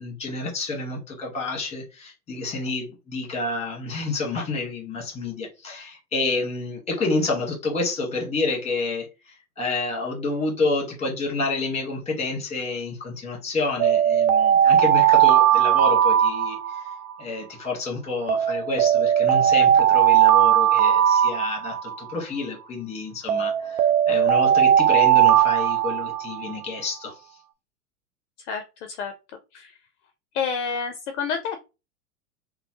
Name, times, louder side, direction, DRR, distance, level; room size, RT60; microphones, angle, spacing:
voice 1, 0.0-16.9 17.2-27.2, left 3 dB, 15° left, 1.5 m, -29 dB
Alarm, 13.8-17.1 18.3-22.1 23.3-26.5, right 10 dB, 55° right, 0.6 m, -18 dB
voice 2, 28.5-29.1 29.5-29.7 30.3-31.6, left 6 dB, 50° left, 0.5 m, -29 dB
3.0 x 2.1 x 2.9 m
figure-of-eight pair, 95°, 45 cm